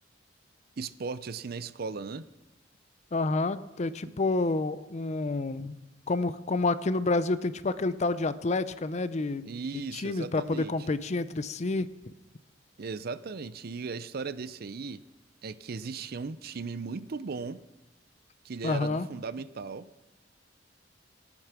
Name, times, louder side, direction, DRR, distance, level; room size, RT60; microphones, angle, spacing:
voice 1, 0.8-2.3 4.0-4.1 9.4-10.7 12.8-15.0 15.4-17.6 18.4-19.9, right 4 dB, 55° right, 16 dB, 0.5 m, -37 dB
voice 2, 3.1-5.8 6.1-9.5 9.9-11.9 18.6-19.1, left 3 dB, 35° left, 15 dB, 0.5 m, -29 dB
18.0 x 9.0 x 6.0 m, 1.0 s
head